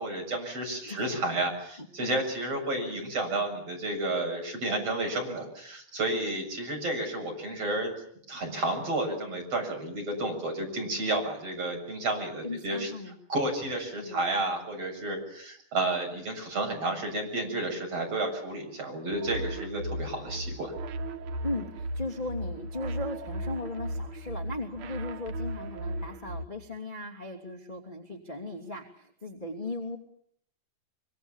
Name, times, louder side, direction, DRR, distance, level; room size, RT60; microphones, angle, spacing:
voice 1, 0.0-7.9 8.3-12.9 13.3-20.7, right 2 dB, 35° right, 2 dB, 8.2 m, -31 dB
voice 2, 12.4-13.2 14.0-14.5 21.4-30.0, left 2 dB, 15° left, -1 dB, 2.2 m, -37 dB
sound 1, 19.1-26.5, right 1 dB, 90° right, 1.5 m, -36 dB
25.0 x 25.0 x 7.2 m, 0.68 s
omnidirectional pair, 5.0 m